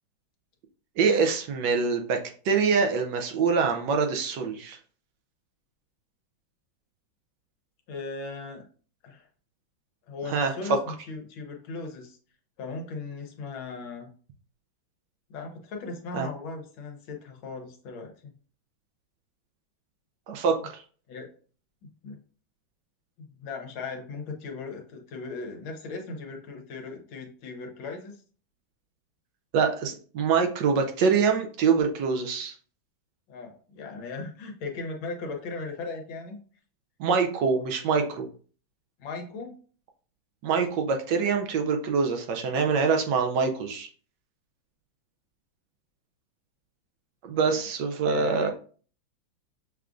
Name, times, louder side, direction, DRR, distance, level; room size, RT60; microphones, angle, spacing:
voice 1, 1.0-4.8 10.3-10.5 16.1-16.3 20.3-20.8 29.5-32.6 37.0-38.3 40.4-43.9 47.2-48.5, right 5 dB, 75° right, 4 dB, 1.1 m, -25 dB
voice 2, 7.9-8.6 9.0-9.3 10.1-12.2 12.6-14.1 15.3-18.4 21.1-21.3 22.0-22.2 23.4-28.2 33.3-36.4 39.0-39.6 47.4-47.7 48.1-48.5, left 3 dB, 80° left, 2 dB, 1.7 m, -38 dB
6.5 x 2.4 x 2.4 m, 0.42 s
omnidirectional pair, 2.2 m